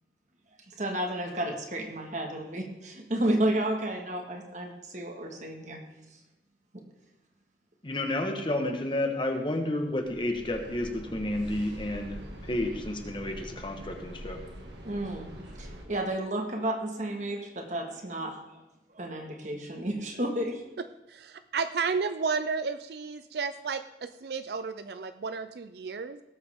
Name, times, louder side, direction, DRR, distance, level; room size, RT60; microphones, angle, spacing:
voice 1, 0.8-5.8 14.8-15.3 15.6-18.3 18.9-20.6, right 1 dB, 40° right, 3 dB, 1.8 m, -31 dB
voice 2, 7.8-12.2 12.4-14.4, left 1 dB, 25° left, 4 dB, 1.3 m, -31 dB
sound 1, 10.0-15.9, equal, 75° right, 2.1 m, -44 dB
voice 3, 21.1-26.2, right 5 dB, 60° right, 11 dB, 0.4 m, -32 dB
18.0 x 7.9 x 3.6 m, 0.98 s
head